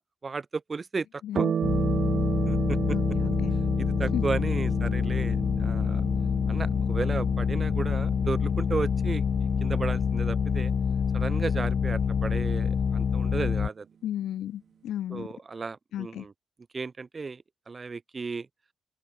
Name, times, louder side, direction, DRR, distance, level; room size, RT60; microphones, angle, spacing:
voice 1, 0.2-1.5 2.5-2.8 3.8-6.0 6.5-10.7 11.1-13.9 15.1-16.3 16.7-18.5, right 4 dB, 35° right, 2.9 m, -34 dB
sound 1, 1.3-10.2, right 7 dB, 60° right, 1.5 m, -33 dB
sound 2, 1.6-13.7, left 6 dB, 55° left, 0.7 m, -26 dB
voice 2, 2.9-3.5 4.1-4.2 14.0-15.3 15.9-16.2, left 11 dB, 85° left, 1.5 m, -34 dB
open air
cardioid pair, 85°, 0 cm